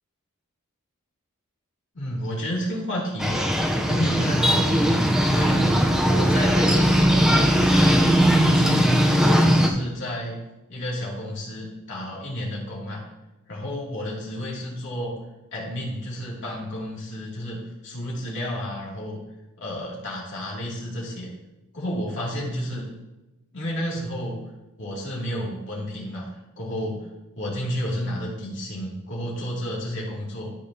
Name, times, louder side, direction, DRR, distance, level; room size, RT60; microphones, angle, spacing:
voice 1, 1.9-3.4 3.8-5.7 6.1-8.9 9.2-10.4 10.7-13.0 13.5-15.2 15.5-19.2 19.6-21.3 21.7-22.9 23.5-24.4 24.8-26.3 26.6-27.1 27.3-30.5, equal, 60° left, -4 dB, 2.5 m, -31 dB
sound 1, 3.2-9.7, equal, 5° right, 0.6 m, -19 dB
13.0 x 5.2 x 2.8 m, 1.0 s
head